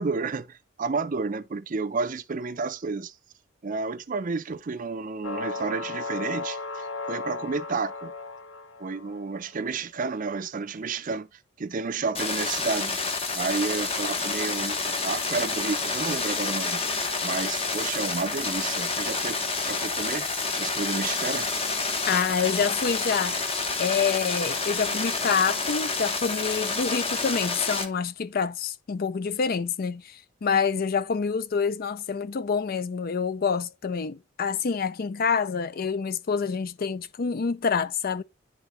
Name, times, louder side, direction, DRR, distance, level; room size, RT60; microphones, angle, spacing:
voice 1, 0.0-3.1 3.6-8.1 8.8-11.3 11.6-13.0 13.3-16.8 17.2-20.3 20.5-21.5, right 4 dB, 40° right, 0.5 m, -31 dB
sound 1, 5.2-9.3, left 3 dB, 75° left, 0.8 m, -35 dB
sound 2, 12.1-27.8, left 3 dB, 30° left, 0.9 m, -29 dB
voice 2, 22.1-23.4 23.8-38.2, left 6 dB, 50° left, 0.4 m, -27 dB
10.0 x 3.7 x 3.1 m
head